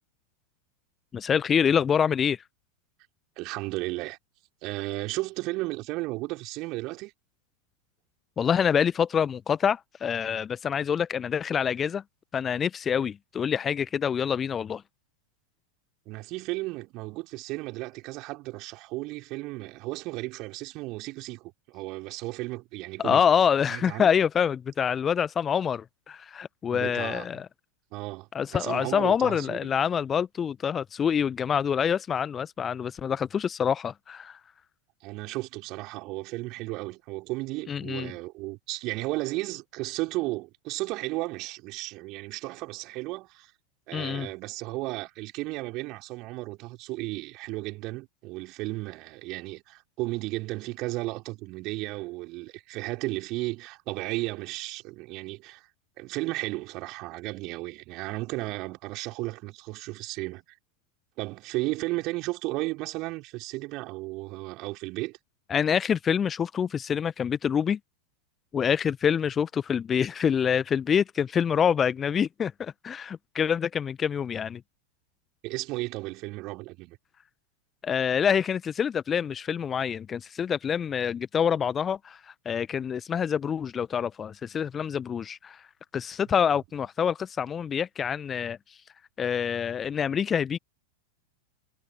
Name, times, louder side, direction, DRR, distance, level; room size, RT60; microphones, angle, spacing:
voice 1, 1.1-2.4 8.4-12.0 12.3-14.8 23.0-27.5 28.3-34.4 37.7-38.1 43.9-44.3 65.5-67.8 68.5-74.6 77.8-82.2 82.4-85.6 85.9-88.6 89.2-90.6, left 7 dB, 20° left, 1.0 m, -26 dB
voice 2, 3.4-4.2 4.6-7.1 16.1-23.3 23.7-24.1 26.7-27.3 27.9-29.7 35.0-43.5 43.9-55.6 56.0-60.4 61.2-65.2 75.4-77.0, right 21 dB, 40° right, 4.9 m, -34 dB
figure-of-eight pair, 90°, 0 cm